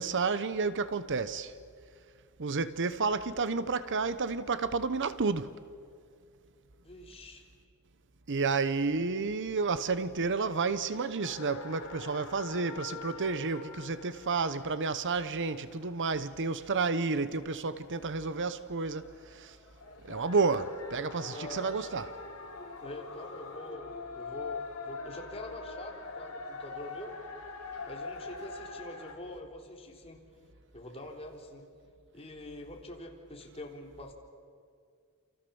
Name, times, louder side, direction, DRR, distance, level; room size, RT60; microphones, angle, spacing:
voice 1, 0.0-1.5 2.4-5.6 8.3-19.1 19.4-19.5 20.0-22.1, right 4 dB, 55° right, 0.9 m, -31 dB
voice 2, 6.8-7.4 21.3-21.9 22.8-27.2 27.9-30.2 30.7-31.7 32.1-34.1, left 1 dB, 25° left, 3.8 m, -45 dB
sound 1, 11.2-29.2, left 4 dB, 70° left, 3.9 m, -44 dB
28.5 x 28.5 x 7.1 m
head